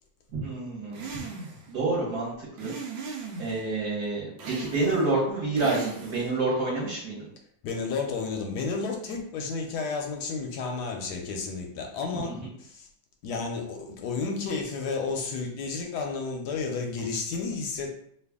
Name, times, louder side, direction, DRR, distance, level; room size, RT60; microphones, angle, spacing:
voice 1, 0.3-1.2 1.7-2.7 3.4-7.3 12.1-12.5, right 3 dB, 55° right, -6 dB, 1.5 m, -28 dB
sound 1, 0.9-1.7 2.6-3.6 4.4-5.1 5.6-6.4, right 5 dB, 80° right, 1.4 m, -37 dB
voice 2, 7.6-12.3 12.6-12.9 13.2-17.9, left 4 dB, 70° left, 2 dB, 1.0 m, -32 dB
3.3 x 2.3 x 3.4 m, 0.68 s
omnidirectional pair, 2.1 m